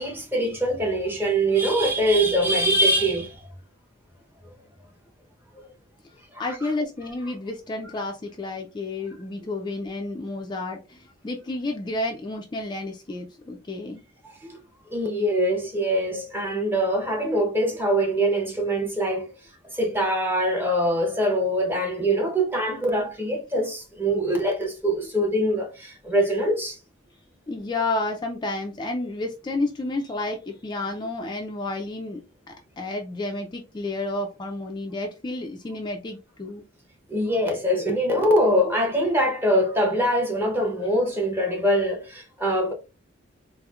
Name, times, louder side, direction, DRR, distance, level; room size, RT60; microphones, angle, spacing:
voice 1, 0.0-3.4 5.6-5.7 6.3-6.5 14.9-19.3 19.7-26.8 37.1-42.7, equal, 10° right, 0.8 m, -23 dB
voice 2, 6.0-14.0 27.5-32.2 32.5-36.6, left 2 dB, 25° left, 0.4 m, -31 dB
4.2 x 2.0 x 2.3 m
head